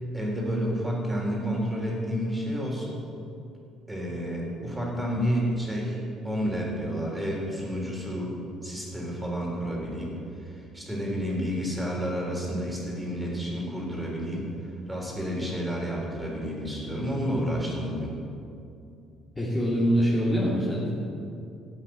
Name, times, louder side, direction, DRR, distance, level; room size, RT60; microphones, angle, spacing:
voice 1, 0.1-3.0 3.9-8.3 8.6-10.1 10.4-14.5 14.9-18.1, equal, 10° right, -2 dB, 3.9 m, -30 dB
voice 2, 19.4-20.9, equal, 15° left, -6 dB, 2.7 m, -24 dB
14.0 x 8.3 x 7.7 m, 2.6 s
cardioid pair, 110°, 0 cm